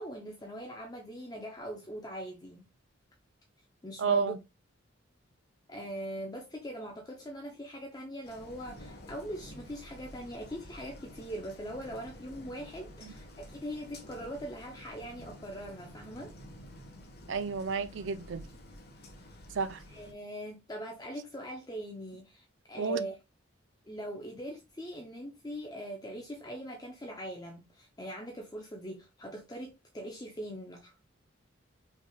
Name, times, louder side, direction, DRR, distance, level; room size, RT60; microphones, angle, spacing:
voice 1, 0.0-2.7 3.8-4.3 5.7-16.3 19.9-23.2 23.9-31.0, right 1 dB, 20° left, 0.6 m, -41 dB
voice 2, 4.0-4.4 13.0-13.1 17.3-18.4 19.5-19.8 22.8-23.1, right 5 dB, 65° right, 0.5 m, -31 dB
sound 1, 8.2-20.1, left 1 dB, 50° left, 1.2 m, -50 dB
5.3 x 3.3 x 2.3 m
head